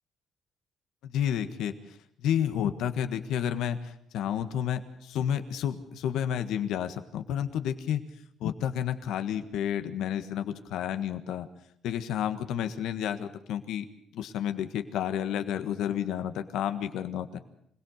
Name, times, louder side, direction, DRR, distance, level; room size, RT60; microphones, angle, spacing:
voice 1, 1.0-8.0 8.4-11.5 11.8-13.8 14.1-17.4, left 9 dB, 85° left, 9 dB, 1.5 m, -31 dB
26.0 x 17.5 x 6.6 m, 0.70 s
cardioid pair, 90°, 0 cm